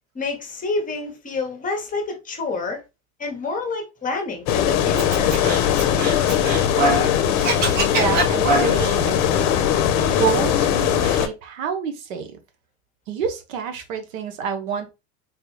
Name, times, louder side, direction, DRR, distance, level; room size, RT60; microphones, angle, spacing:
voice 1, 0.1-2.8 3.2-5.3, left 3 dB, 20° left, 0.9 m, -28 dB
sound 1, 4.5-11.3, left 9 dB, 55° left, 0.7 m, -20 dB
Scratching (performance technique), 5.0-7.1 7.4-9.0, right 2 dB, 45° right, 1.1 m, -23 dB
voice 2, 7.9-9.6 10.2-12.4 13.1-14.9, right 6 dB, 85° right, 0.9 m, -28 dB
3.6 x 2.2 x 3.1 m
supercardioid pair, 120°, 38 cm